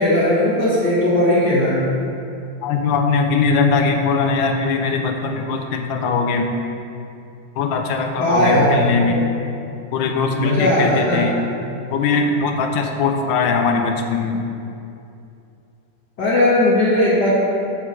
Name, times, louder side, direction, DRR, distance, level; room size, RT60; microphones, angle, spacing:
voice 1, 0.0-1.8 8.2-9.2 10.3-11.2 16.2-17.4, left 1 dB, 65° left, -10 dB, 2.1 m, -17 dB
voice 2, 2.6-6.5 7.6-9.2 9.9-11.4 11.9-14.4, left 4 dB, 90° left, 4 dB, 1.4 m, -20 dB
6.8 x 4.4 x 6.1 m, 2.6 s
omnidirectional pair, 2.0 m